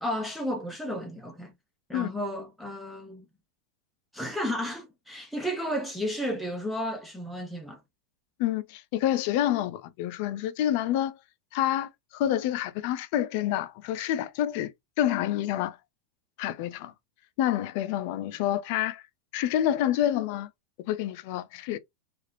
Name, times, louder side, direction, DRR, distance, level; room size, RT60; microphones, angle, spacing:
voice 1, 0.0-1.5 1.9-3.3 4.1-7.8, equal, ahead, 0.5 m, -33 dB
voice 2, 8.4-11.2 11.5-14.7 15.0-15.8 16.4-16.9 17.4-19.0 19.3-20.5 20.9-21.8, left 12 dB, 55° left, 0.4 m, -28 dB
3.2 x 2.4 x 2.5 m
supercardioid pair, 150°, 0 cm